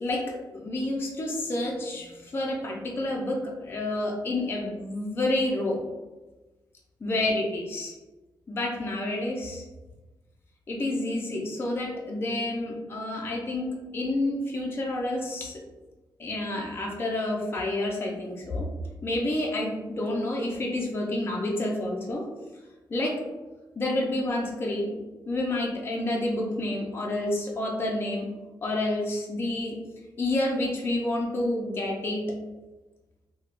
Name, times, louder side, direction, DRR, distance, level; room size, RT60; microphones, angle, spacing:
voice 1, 0.0-5.8 7.0-7.9 8.5-9.6 10.7-15.6 16.2-18.7 19.0-22.2 22.9-23.2 23.8-24.9 25.3-28.3 28.6-29.8 30.2-32.2, left 1 dB, 30° left, -1 dB, 0.4 m, -29 dB
3.2 x 2.1 x 2.4 m, 1.1 s
wide cardioid pair, 135°, 8 cm